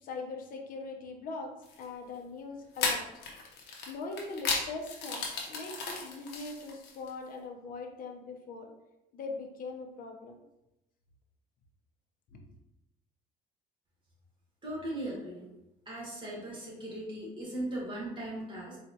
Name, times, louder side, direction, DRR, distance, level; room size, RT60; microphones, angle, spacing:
voice 1, 0.0-3.1 3.9-8.7 9.1-10.4 12.3-12.4, left 3 dB, 55° left, 3 dB, 0.6 m, -41 dB
sound 1, 1.6-1.8 2.8-7.1, left 4 dB, 90° left, 0.8 m, -35 dB
voice 2, 14.6-15.5 15.8-18.8, right 1 dB, 30° right, -4 dB, 1.5 m, -38 dB
4.3 x 2.4 x 2.7 m, 0.92 s
cardioid pair, 110°, 17 cm